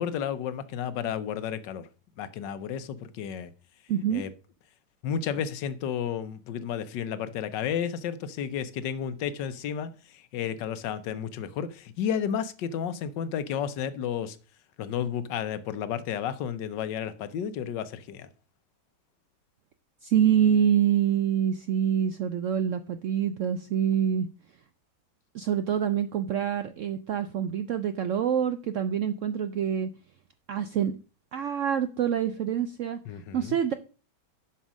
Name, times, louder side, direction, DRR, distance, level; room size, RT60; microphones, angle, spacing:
voice 1, 0.0-1.9 2.2-3.5 4.1-4.3 5.0-14.4 14.8-18.3 33.0-33.6, left 8 dB, 90° left, 1.4 m, -32 dB
voice 2, 3.9-4.2 20.0-24.3 25.3-29.9 30.5-30.9 31.3-33.0 33.3-33.7, right 9 dB, 70° right, 0.7 m, -26 dB
7.2 x 5.6 x 6.2 m
omnidirectional pair, 1.9 m